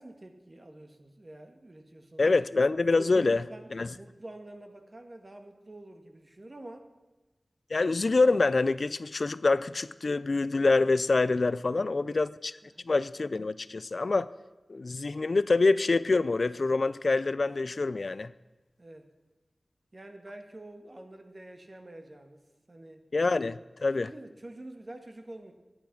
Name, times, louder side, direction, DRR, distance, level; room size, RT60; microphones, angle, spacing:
voice 1, 0.0-2.2 2.5-2.6 3.1-6.9 11.7-12.2 12.6-12.9 18.8-19.1 19.9-22.4 22.7-23.0 24.0-25.5, right 1 dB, 45° right, 1.5 m, -47 dB
voice 2, 2.2-3.5 3.7-3.9 7.7-12.5 12.8-14.3 14.7-18.3 23.1-24.1, left 3 dB, 70° left, 0.4 m, -26 dB
11.5 x 10.5 x 5.8 m
cardioid pair, 45°, 0 cm